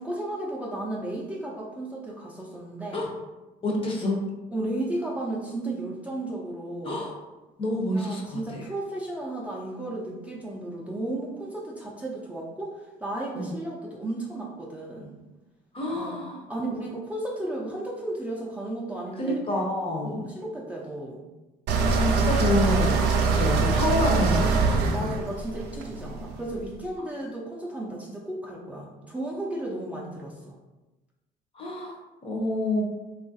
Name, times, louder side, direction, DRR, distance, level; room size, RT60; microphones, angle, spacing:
voice 1, 0.0-3.1 4.5-7.0 7.9-15.2 15.9-16.2 16.5-19.4 20.1-21.2 24.9-30.6, right 1 dB, 10° right, -4 dB, 0.4 m, -34 dB
voice 2, 3.6-4.2 6.8-7.1 7.6-8.6 13.3-13.5 15.7-16.4 19.2-20.3 21.9-25.1 31.5-32.8, left 1 dB, 35° left, -1 dB, 0.6 m, -28 dB
sound 1, 21.7-26.6, right 4 dB, 85° right, 0.4 m, -23 dB
2.9 x 2.3 x 2.6 m, 1.1 s
cardioid pair, 110°, 17 cm